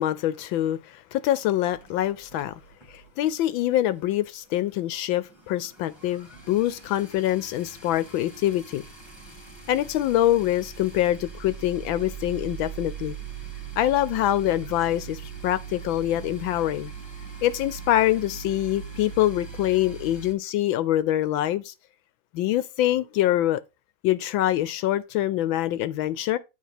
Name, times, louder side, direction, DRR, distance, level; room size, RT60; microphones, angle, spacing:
voice 1, 0.0-2.5 2.9-8.8 9.7-13.2 13.8-16.9 17.4-21.7 22.3-23.6 24.0-26.4, left 13 dB, 75° left, 1.3 m, -25 dB
sound 1, 1.7-3.5 3.7-4.0 4.3-4.4 4.5-20.3, right 6 dB, 15° left, 1.6 m, -41 dB
9.4 x 3.4 x 5.8 m
omnidirectional pair, 2.3 m